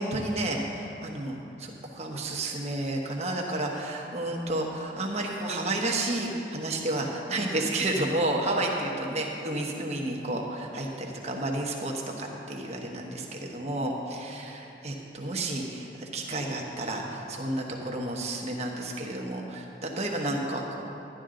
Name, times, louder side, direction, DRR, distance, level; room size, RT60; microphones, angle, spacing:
voice 1, 0.0-20.8, right 1 dB, 35° right, 0 dB, 1.1 m, -31 dB
11.5 x 11.0 x 3.8 m, 2.9 s
head